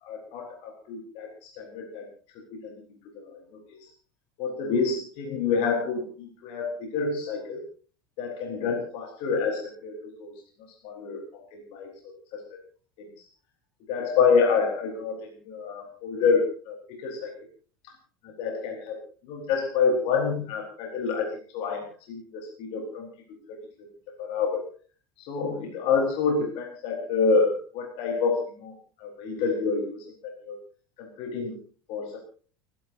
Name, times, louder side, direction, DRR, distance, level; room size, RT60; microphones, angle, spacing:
voice 1, 0.0-2.0 2.6-2.7 3.1-3.4 3.7-3.9 4.4-7.6 8.2-10.3 10.8-12.6 13.0-13.2 13.9-17.3 18.2-19.0 19.3-21.3 21.5-23.1 23.5-23.6 24.2-24.6 25.2-30.0 30.4-30.6 31.0-31.6 31.9-32.2, left 5 dB, 55° left, 1 dB, 4.3 m, -28 dB
30.0 x 11.5 x 2.7 m, 0.40 s
hypercardioid pair, 85°, 12 cm